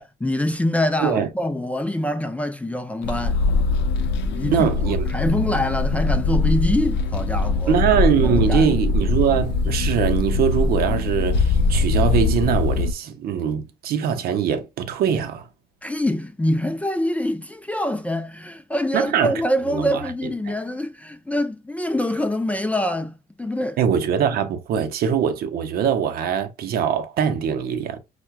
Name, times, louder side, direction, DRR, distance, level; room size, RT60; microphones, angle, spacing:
voice 1, 0.2-3.4 4.2-4.7 5.1-7.8 8.2-8.7 15.8-23.8, left 1 dB, 10° left, 0.4 m, -25 dB
sound 1, 3.0-12.9, left 3 dB, 85° left, 0.5 m, -22 dB
voice 2, 4.5-5.1 7.7-15.5 18.9-19.3 19.7-20.0 20.5-20.6 23.8-28.0, right 8 dB, 65° right, 0.6 m, -22 dB
5.5 x 2.2 x 2.2 m
cardioid pair, 110°, 17 cm